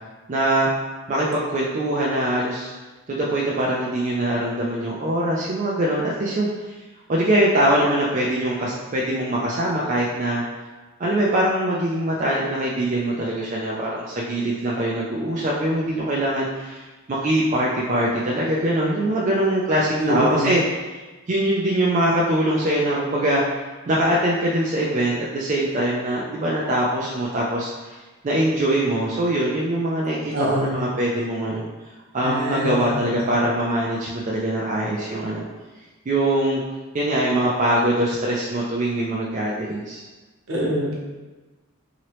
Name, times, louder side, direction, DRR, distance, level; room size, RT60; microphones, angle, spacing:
voice 1, 0.3-0.7 1.1-2.7 3.1-6.5 7.1-10.4 11.0-20.6 21.3-23.4 23.9-28.0 28.2-31.7 32.1-35.4 36.1-36.6 36.9-40.0, right 1 dB, 35° right, -5 dB, 0.3 m, -22 dB
voice 2, 20.0-20.5 30.3-30.7 32.2-33.1 40.5-40.9, equal, 70° right, -4 dB, 0.8 m, -24 dB
2.9 x 2.9 x 2.9 m, 1.2 s
head